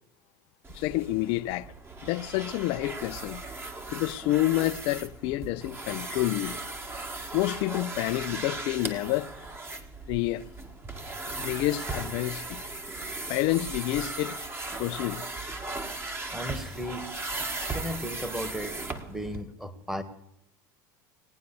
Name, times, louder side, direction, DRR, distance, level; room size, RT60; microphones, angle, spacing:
sound 1, 0.6-19.4, right 2 dB, 20° right, 1.9 m, -37 dB
voice 1, 0.7-1.7 2.0-3.4 3.9-6.6 7.3-9.3 10.1-10.5 11.3-12.6 13.3-14.4 14.8-15.3, left 16 dB, 65° left, 0.7 m, -28 dB
voice 2, 16.3-17.1 17.7-18.8 19.1-20.0, equal, 5° right, 1.7 m, -35 dB
18.5 x 9.4 x 7.0 m
hypercardioid pair, 90°, 10 cm